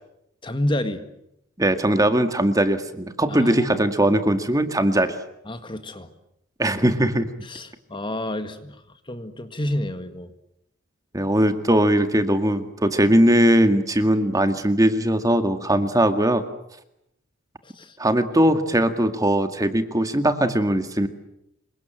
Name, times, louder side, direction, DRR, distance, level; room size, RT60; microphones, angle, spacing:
voice 1, 0.4-1.0 3.3-3.7 5.5-6.1 7.4-8.8 9.1-10.3 17.8-17.9, left 1 dB, 25° left, 9 dB, 1.8 m, -29 dB
voice 2, 1.6-5.1 6.6-7.3 11.1-16.4 18.0-21.1, right 1 dB, 15° right, 8 dB, 2.0 m, -20 dB
27.5 x 24.0 x 9.0 m, 0.79 s
head